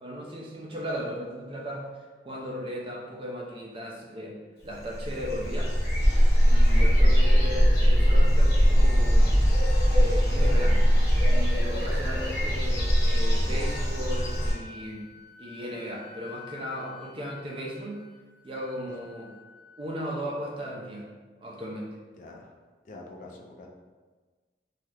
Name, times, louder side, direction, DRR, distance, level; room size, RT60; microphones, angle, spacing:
voice 1, 0.0-4.4 4.6-5.7 6.5-9.4 9.9-10.8 11.3-15.1 15.4-18.0 18.4-19.3 19.8-21.1 21.4-21.9, equal, 30° right, -2 dB, 0.5 m, -36 dB
sound 1, 4.9-14.5, equal, 60° left, 1.1 m, -21 dB
Wind instrument woodwind instrument, 12.3-20.1, left 7 dB, 80° left, 0.7 m, -50 dB
voice 2, 22.2-22.5 22.8-23.7, left 2 dB, 45° left, 0 dB, 0.4 m, -45 dB
2.7 x 2.4 x 3.2 m, 1.4 s
head